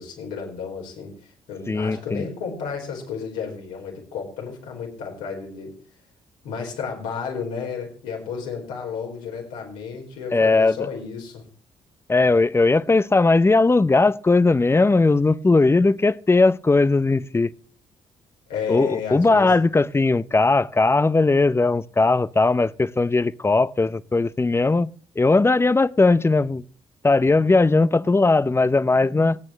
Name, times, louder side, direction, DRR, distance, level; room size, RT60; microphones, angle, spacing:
voice 1, 0.0-5.7 6.4-11.4 18.5-19.5, left 6 dB, 80° left, 4.4 m, -32 dB
voice 2, 1.7-2.3 10.3-10.8 12.1-17.5 18.7-24.9 25.2-26.6 27.0-29.4, left 3 dB, 20° left, 0.6 m, -18 dB
26.0 x 9.0 x 3.2 m
hypercardioid pair, 50°, 13 cm